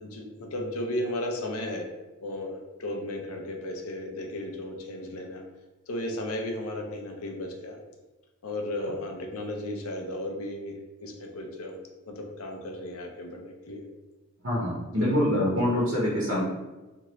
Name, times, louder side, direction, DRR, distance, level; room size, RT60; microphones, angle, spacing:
voice 1, 0.0-1.9 2.2-5.4 5.9-7.8 8.4-11.8 12.1-13.9, left 1 dB, 75° left, 2 dB, 0.6 m, -35 dB
voice 2, 14.4-16.4, left 1 dB, 65° right, -6 dB, 0.9 m, -25 dB
2.8 x 2.5 x 3.0 m, 1.1 s
head